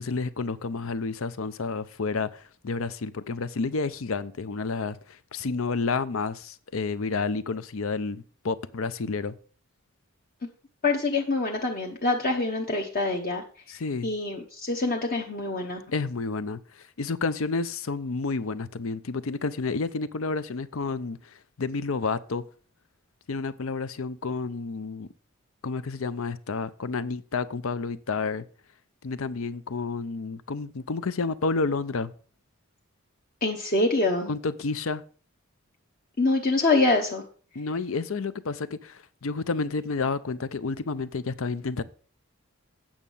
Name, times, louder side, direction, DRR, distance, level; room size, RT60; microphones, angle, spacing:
voice 1, 0.0-9.3 13.7-14.1 15.9-21.2 21.6-22.4 23.3-25.1 25.6-28.4 29.0-32.1 34.3-35.0 37.5-41.8, left 4 dB, 70° left, 0.6 m, -30 dB
voice 2, 10.8-13.4 14.0-15.8 33.4-34.3 36.2-37.2, left 2 dB, 40° left, 0.9 m, -25 dB
8.8 x 6.2 x 5.5 m
head